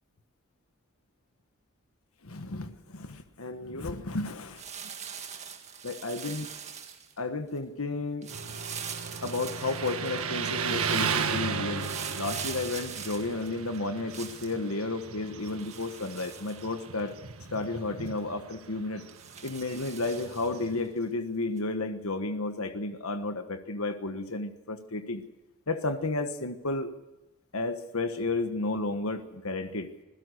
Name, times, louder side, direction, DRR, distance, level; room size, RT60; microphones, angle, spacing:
voice 1, 2.2-4.9 5.8-6.5 7.2-8.3 9.2-11.9 12.1-17.1 17.5-19.0 19.4-25.2 25.7-26.9 27.5-29.9, left 2 dB, 85° left, 8 dB, 1.3 m, -32 dB
sound 1, 4.5-7.2 8.2-10.3 11.7-14.6 15.5-17.1 17.5-17.6 18.1-18.2 19.1-20.7 21.6-21.7, right 7 dB, 30° right, 1.9 m, -42 dB
Motorcycle, 8.3-20.9, right 5 dB, 85° right, 1.6 m, -35 dB
26.5 x 16.5 x 6.5 m, 1.0 s
head